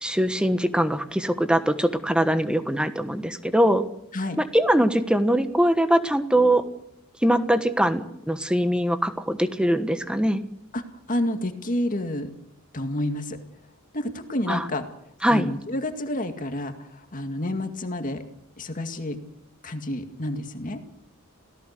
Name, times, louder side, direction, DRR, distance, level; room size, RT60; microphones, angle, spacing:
voice 1, 0.0-3.8 4.4-6.6 7.2-10.4 14.5-14.6 15.2-15.5, equal, 5° right, 10 dB, 1.3 m, -22 dB
voice 2, 11.1-12.3 12.7-13.4 13.9-14.8 15.3-18.2 18.6-19.2 19.6-20.8, left 1 dB, 40° left, 6 dB, 2.2 m, -29 dB
28.0 x 17.5 x 6.8 m, 0.77 s
head